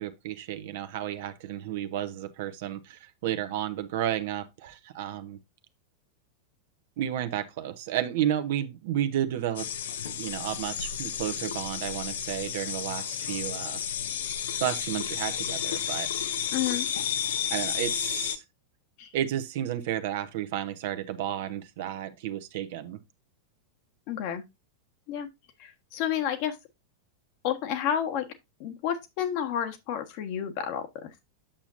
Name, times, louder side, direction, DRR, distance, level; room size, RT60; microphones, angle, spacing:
voice 1, 0.0-5.4 7.0-9.7 10.0-13.8 14.6-16.3 17.5-18.4 19.1-23.0, right 11 dB, 50° right, 1.0 m, -32 dB
sound 1, 9.6-18.4, left 8 dB, 60° left, 0.8 m, -32 dB
voice 2, 16.5-16.9 19.0-19.1 24.1-24.4 25.1-25.3 25.6-26.6 27.4-28.3 28.6-31.1, left 9 dB, 45° left, 1.3 m, -30 dB
8.7 x 7.1 x 2.6 m
figure-of-eight pair, 90°, 0 cm